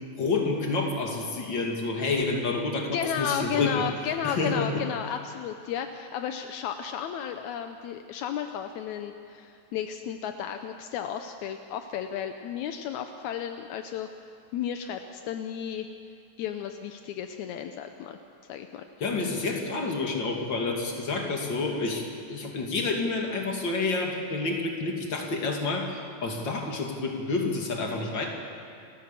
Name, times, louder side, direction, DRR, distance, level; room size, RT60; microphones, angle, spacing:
voice 1, 0.2-3.8 4.2-4.7 19.0-28.3, left 3 dB, 35° left, 1 dB, 2.7 m, -29 dB
voice 2, 2.9-14.1 14.5-15.9 16.4-18.2 18.5-18.9, left 8 dB, 80° left, 7 dB, 1.7 m, -33 dB
29.5 x 14.0 x 7.5 m, 2.4 s
omnidirectional pair, 4.2 m